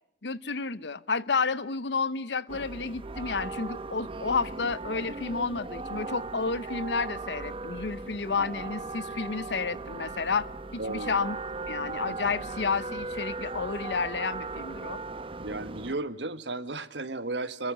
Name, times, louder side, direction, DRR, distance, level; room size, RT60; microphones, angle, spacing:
voice 1, 0.2-11.4 11.7-15.0, left 4 dB, 75° left, 18 dB, 0.9 m, -31 dB
sound 1, 2.5-16.0, right 3 dB, 30° right, 0.9 m, -37 dB
voice 2, 10.8-11.3 15.4-17.7, right 2 dB, 85° right, 12 dB, 1.5 m, -34 dB
29.0 x 22.5 x 6.3 m, 0.75 s
head